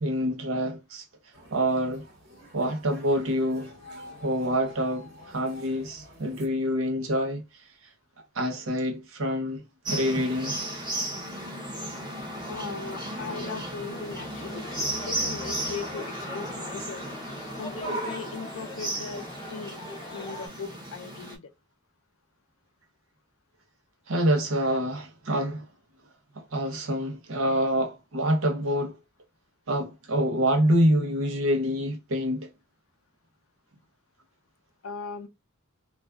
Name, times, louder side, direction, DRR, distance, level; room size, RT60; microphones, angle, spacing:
voice 1, 0.0-1.0 1.5-2.1 2.5-3.7 4.2-7.4 8.3-9.6 9.9-10.6 24.1-25.6 26.3-28.9 29.7-32.5, equal, 75° right, 0.8 m, -26 dB
sound 1, 1.3-6.5, left 1 dB, 50° right, 1.1 m, -48 dB
sound 2, 9.8-21.4, right 1 dB, 20° right, 0.7 m, -35 dB
voice 2, 12.5-17.1 17.6-19.9 20.1-21.5 34.8-35.3, left 5 dB, 75° left, 0.5 m, -39 dB
sound 3, 13.9-20.5, left 1 dB, 20° left, 0.5 m, -41 dB
2.4 x 2.3 x 2.2 m
head